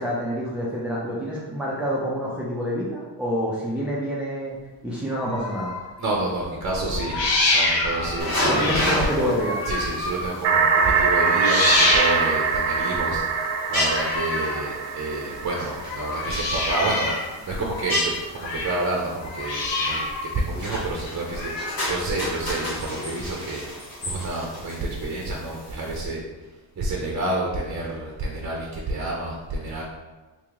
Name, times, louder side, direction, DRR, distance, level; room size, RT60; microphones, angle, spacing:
voice 1, 0.0-4.6 4.8-5.7 8.5-9.6, equal, 5° right, -7 dB, 0.6 m, -27 dB
sound 1, 5.1-5.9 6.9-10.4 10.7-12.5 13.7-14.7 15.7-17.3 17.6-18.9 19.2-20.3 21.3-21.9, left 2 dB, 65° left, 0.9 m, -26 dB
voice 2, 6.0-9.3 9.7-13.4 13.7-21.5 21.9-26.2 26.8-29.8, right 2 dB, 35° right, -2 dB, 0.7 m, -29 dB
sound 2, 8.2-26.0, left 1 dB, 50° left, 1.3 m, -33 dB
sound 3, 10.4-16.1, right 5 dB, 80° right, 0.5 m, -23 dB
3.0 x 2.9 x 3.7 m, 1.2 s
cardioid pair, 70°, 46 cm